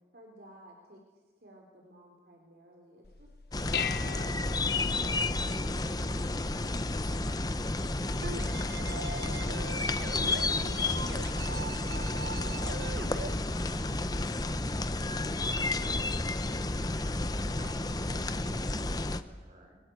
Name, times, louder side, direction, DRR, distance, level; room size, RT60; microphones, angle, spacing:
voice 1, 0.1-1.0 1.4-3.3, equal, 60° right, 0 dB, 4.4 m, -56 dB
Dishes pots and pans, 3.0-12.3, left 7 dB, 60° left, 0.8 m, -43 dB
sound 1, 3.5-19.2, left 2 dB, 20° left, 0.9 m, -31 dB
sound 2, 8.2-13.3, right 3 dB, 75° right, 1.3 m, -41 dB
voice 2, 10.2-16.6 17.6-19.8, right 1 dB, 40° right, 1 dB, 6.8 m, -55 dB
29.5 x 23.0 x 8.2 m, 1.3 s
head